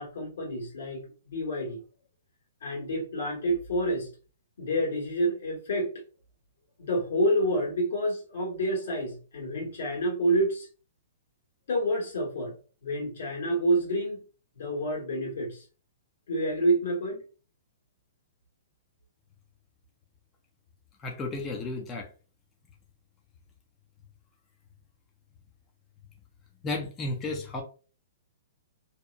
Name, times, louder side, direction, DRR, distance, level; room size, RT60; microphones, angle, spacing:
voice 1, 0.0-1.8 2.6-4.1 4.6-5.9 6.8-10.7 11.7-12.5 12.8-14.2 14.5-15.6 16.3-17.2, right 1 dB, 75° left, -1 dB, 1.3 m, -28 dB
voice 2, 21.0-22.1 26.6-27.6, left 2 dB, 15° left, 1 dB, 0.3 m, -33 dB
2.7 x 2.0 x 2.4 m, 0.37 s
hypercardioid pair, 165°, 0 cm